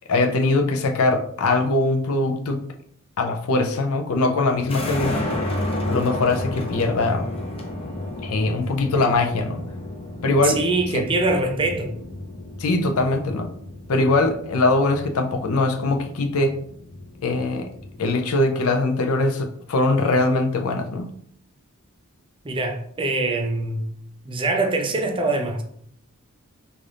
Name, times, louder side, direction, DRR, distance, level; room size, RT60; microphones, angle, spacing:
voice 1, 0.1-2.6 3.2-5.2 5.9-7.2 8.2-9.6 10.2-10.6 10.9-11.0 12.6-13.5 13.9-16.6 17.2-17.7 18.0-21.1, left 2 dB, 75° left, 0.5 m, -21 dB
sound 1, 4.6-18.1, left 1 dB, 25° left, 0.6 m, -32 dB
voice 2, 10.4-11.9 22.4-23.9 24.2-25.6, right 2 dB, 25° right, 0.5 m, -23 dB
3.8 x 2.5 x 3.3 m
head